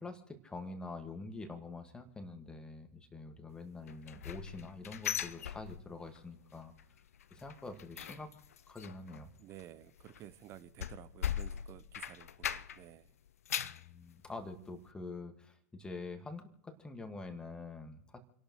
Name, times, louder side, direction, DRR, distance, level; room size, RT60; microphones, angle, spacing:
voice 1, 0.0-6.7 7.3-8.3 8.7-9.3 13.6-18.2, left 3 dB, 10° left, 6 dB, 1.8 m, -46 dB
sound 1, 3.9-6.2 6.5-6.8 7.1-12.9 13.3-13.9 14.4-14.5 14.9-15.0, left 9 dB, 65° left, 0.6 m, -40 dB
voice 2, 9.4-13.1, right 13 dB, 35° right, 16 dB, 0.7 m, -53 dB
29.0 x 12.0 x 3.1 m, 0.75 s
figure-of-eight pair, 95°, 8 cm